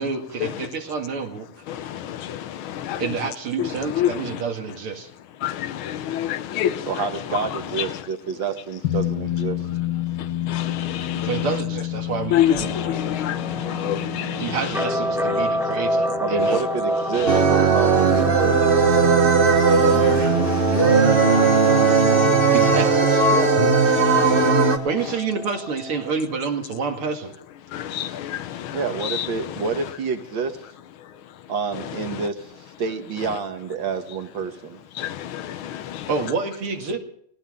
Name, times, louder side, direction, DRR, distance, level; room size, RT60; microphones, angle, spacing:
voice 1, 0.0-1.5 3.0-5.1 11.2-12.8 14.4-16.6 22.5-23.3 24.8-27.3 36.1-37.0, right 5 dB, 80° right, 2.9 m, -28 dB
voice 2, 1.7-3.0 4.0-4.1 5.4-6.9 7.8-7.9 10.2-11.3 12.3-14.5 19.7-22.5 23.9-24.5 27.7-29.3 35.0-36.1, left 11 dB, 75° left, 1.6 m, -28 dB
voice 3, 6.9-9.6 16.2-18.8 23.3-23.5 28.7-30.6 31.5-32.4 32.8-34.8, right 6 dB, 65° right, 2.2 m, -28 dB
sound 1, 8.8-19.5, left 13 dB, 55° left, 1.4 m, -30 dB
sound 2, 12.5-26.1, equal, ahead, 2.3 m, -28 dB
sound 3, 17.3-24.8, right 4 dB, 30° right, 1.3 m, -17 dB
18.0 x 18.0 x 3.7 m
omnidirectional pair, 2.4 m